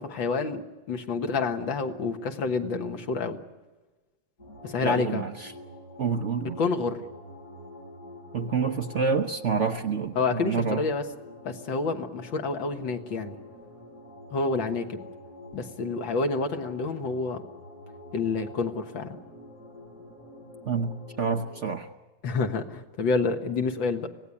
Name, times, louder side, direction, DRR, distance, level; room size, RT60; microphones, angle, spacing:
voice 1, 0.0-3.4 4.6-5.3 6.6-7.0 10.2-11.0 11.4-13.4 14.3-15.0 15.5-17.4 18.1-19.2 22.2-24.1, left 4 dB, 75° left, 5 dB, 2.3 m, -28 dB
sound 1, 4.4-21.7, left 1 dB, 45° left, 7.9 m, -47 dB
voice 2, 4.8-5.5 6.0-6.6 8.3-10.8 20.7-21.9, right 5 dB, 50° right, 5 dB, 0.9 m, -28 dB
25.5 x 17.5 x 9.9 m, 1.2 s
omnidirectional pair, 2.1 m